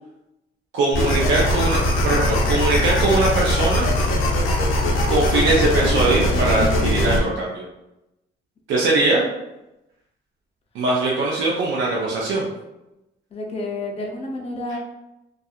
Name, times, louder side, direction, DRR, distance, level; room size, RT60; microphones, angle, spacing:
voice 1, 0.7-1.8 2.0-3.9 5.1-7.6 8.7-9.2 10.7-12.5, right 2 dB, 75° right, -4 dB, 0.5 m, -21 dB
sound 1, 0.9-7.2, left 1 dB, 90° left, 0.5 m, -20 dB
voice 2, 13.3-14.8, left 2 dB, 30° left, 1 dB, 0.5 m, -30 dB
2.6 x 2.3 x 2.3 m, 0.94 s
cardioid pair, 90°, 20 cm